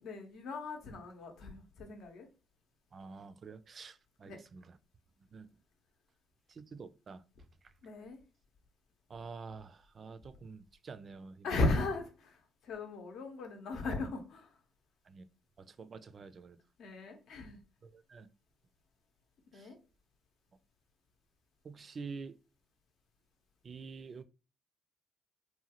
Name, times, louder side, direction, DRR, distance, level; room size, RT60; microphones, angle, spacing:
voice 1, 0.0-2.3 4.3-4.4 7.8-8.2 11.4-12.4 12.6-14.5 16.8-17.6 19.5-19.8, left 2 dB, 75° left, 0.7 m, -37 dB
voice 2, 2.9-4.8 5.3-5.5 6.6-7.2 9.1-11.6 15.1-15.2 15.6-16.6 17.8-18.3 19.5-19.7 21.6-22.3 23.6-24.2, right 4 dB, 50° right, 0.3 m, -48 dB
2.8 x 2.2 x 2.8 m
supercardioid pair, 60°, 0 cm